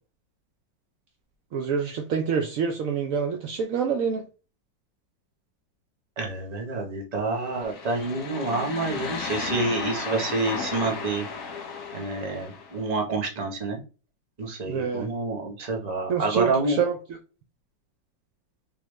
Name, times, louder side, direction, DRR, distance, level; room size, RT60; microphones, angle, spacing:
voice 1, 1.5-4.2 14.7-15.1 16.1-17.0, right 6 dB, 90° right, 0.7 m, -26 dB
voice 2, 6.2-11.3 11.9-13.8 14.4-16.8, right 3 dB, 35° right, 0.7 m, -28 dB
sound 1, 7.4-12.8, left 5 dB, 60° left, 1.2 m, -35 dB
3.7 x 3.0 x 3.1 m
omnidirectional pair, 2.1 m